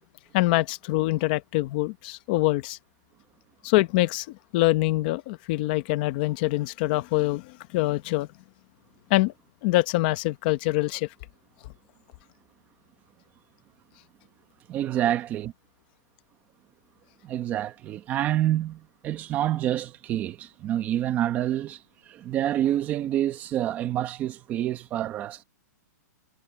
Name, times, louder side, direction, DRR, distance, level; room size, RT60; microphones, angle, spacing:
voice 1, 0.3-2.8 3.6-8.3 9.1-9.3 9.6-11.1, left 19 dB, 30° left, 0.9 m, -24 dB
voice 2, 14.7-15.5 17.2-25.4, right 12 dB, 15° right, 1.0 m, -27 dB
hypercardioid pair, 175°, 10 cm